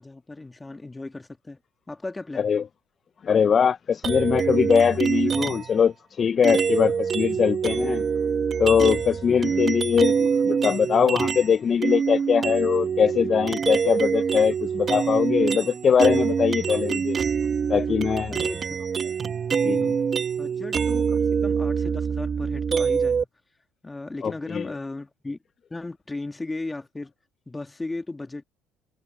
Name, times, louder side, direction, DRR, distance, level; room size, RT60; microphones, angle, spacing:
voice 1, 0.0-1.6 1.9-2.5 9.3-9.7 18.3-18.9 20.4-23.3 23.8-25.4 25.7-27.1 27.5-28.4, left 2 dB, 15° left, 2.4 m, -36 dB
voice 2, 3.2-8.1 8.6-17.2 17.7-18.4 19.6-19.9 24.2-24.7, left 7 dB, 40° left, 0.7 m, -22 dB
sound 1, 4.0-5.8 6.4-11.5 11.8-23.2, right 6 dB, 40° right, 1.2 m, -25 dB
hypercardioid pair, 70°, 0 cm